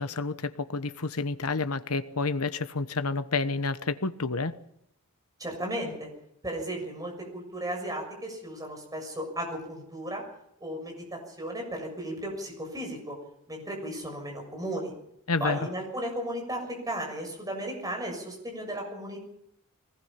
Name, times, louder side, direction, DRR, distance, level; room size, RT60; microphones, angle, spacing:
voice 1, 0.0-4.6 15.3-15.6, left 3 dB, 75° left, 11 dB, 1.2 m, -29 dB
voice 2, 5.4-6.1 6.4-10.2 10.6-13.2 13.5-14.9 15.4-16.6 16.9-19.2, right 1 dB, 15° right, 1 dB, 6.8 m, -35 dB
22.5 x 19.5 x 5.9 m, 0.76 s
head